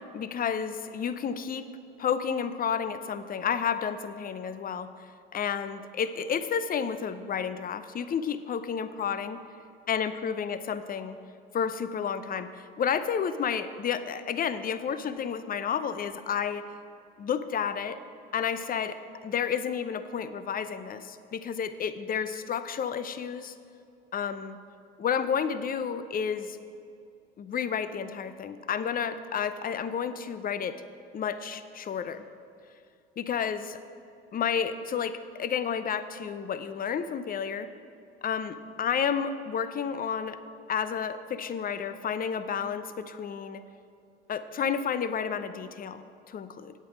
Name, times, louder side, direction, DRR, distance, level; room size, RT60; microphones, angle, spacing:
voice 1, 0.0-1.7 2.0-4.9 5.3-9.4 9.9-11.2 11.5-16.7 17.2-18.0 18.3-23.5 24.1-24.6 25.0-26.6 27.4-30.8 31.1-32.2 33.2-33.8 34.3-37.7 38.2-40.4 40.7-43.6 44.3-46.7, left 7 dB, 30° left, 12 dB, 0.6 m, -31 dB
8.8 x 8.2 x 6.0 m, 2.5 s
hypercardioid pair, 70°, 30 cm